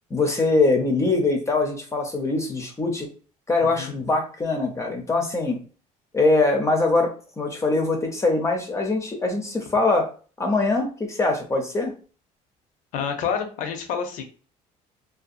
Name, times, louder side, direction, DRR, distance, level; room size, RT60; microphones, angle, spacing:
voice 1, 0.1-3.1 3.5-5.6 6.1-10.1 10.4-11.9, left 3 dB, 20° left, 2 dB, 0.6 m, -22 dB
voice 2, 12.9-14.2, left 7 dB, 65° left, 5 dB, 0.6 m, -28 dB
2.6 x 2.3 x 2.4 m, 0.38 s
cardioid pair, 110°, 14 cm